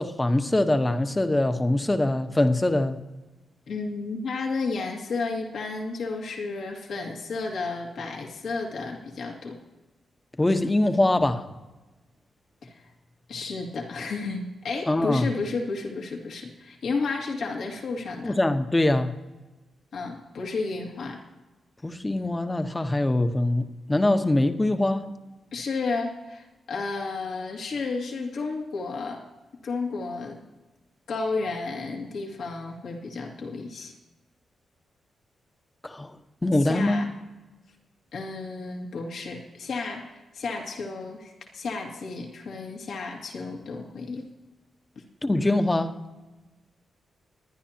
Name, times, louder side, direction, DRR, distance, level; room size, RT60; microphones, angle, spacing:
voice 1, 0.0-3.0 10.4-11.4 14.9-15.3 18.2-19.1 21.8-23.6 23.9-25.1 35.8-36.1 36.4-37.0 45.2-45.9, left 1 dB, 20° left, 1.1 m, -23 dB
voice 2, 3.7-9.6 12.6-12.8 13.3-18.4 19.9-21.2 25.5-29.2 29.6-30.4 31.1-33.9 36.5-37.1 38.1-44.2 45.0-45.1, left 3 dB, 75° left, 2.1 m, -32 dB
23.0 x 9.8 x 2.9 m
cardioid pair, 65°, 0 cm